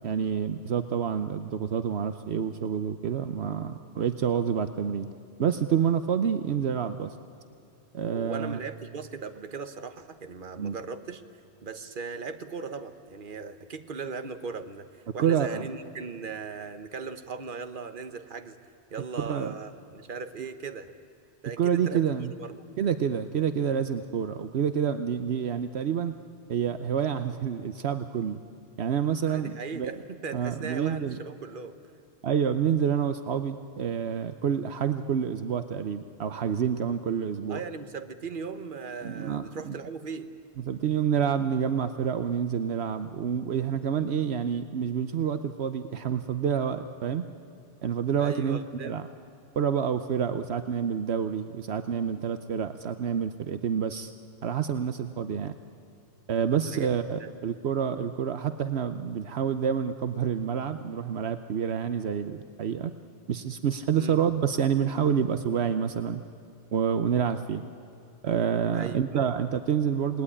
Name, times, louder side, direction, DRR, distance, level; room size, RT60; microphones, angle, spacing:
voice 1, 0.0-5.1 5.4-7.1 7.9-8.6 10.5-10.8 15.2-15.7 19.2-19.5 21.6-22.3 22.8-26.1 26.5-28.4 28.8-29.9 30.3-31.2 32.2-37.6 39.0-39.8 40.7-47.2 47.8-49.1 49.6-54.1 54.4-55.5 56.3-62.9 63.3-66.2 66.7-67.6 68.2-70.2, right 8 dB, 75° right, 10 dB, 1.0 m, -28 dB
voice 2, 8.1-11.2 11.6-14.9 15.1-18.6 18.9-20.9 21.4-22.0 22.4-22.6 29.3-31.7 37.5-40.3 48.2-49.0 56.5-56.9 57.2-57.3 63.9-64.2 68.7-69.3, right 5 dB, 50° right, 9 dB, 1.3 m, -38 dB
28.0 x 19.0 x 9.9 m, 2.6 s
omnidirectional pair, 1.1 m